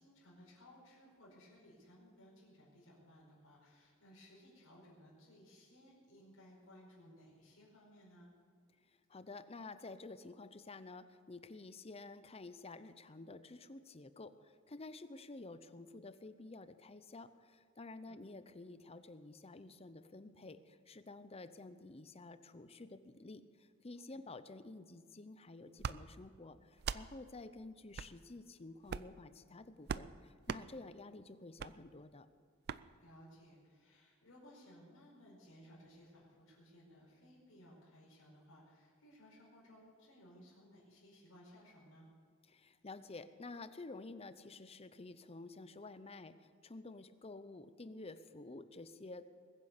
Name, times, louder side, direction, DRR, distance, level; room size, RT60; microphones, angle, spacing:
voice 1, 0.0-8.3 18.1-18.2 24.1-24.2 33.0-42.1, equal, 85° left, -5 dB, 5.2 m, -60 dB
voice 2, 8.9-32.3 42.5-49.3, left 3 dB, 30° left, 12 dB, 0.7 m, -51 dB
sound 1, 25.8-26.0 26.8-27.1 27.9-28.1 28.8-29.2 29.9-30.1 30.5-30.6 31.6-31.7 32.7-32.8, right 6 dB, 50° right, 0.4 m, -40 dB
21.5 x 9.7 x 6.7 m, 2.1 s
head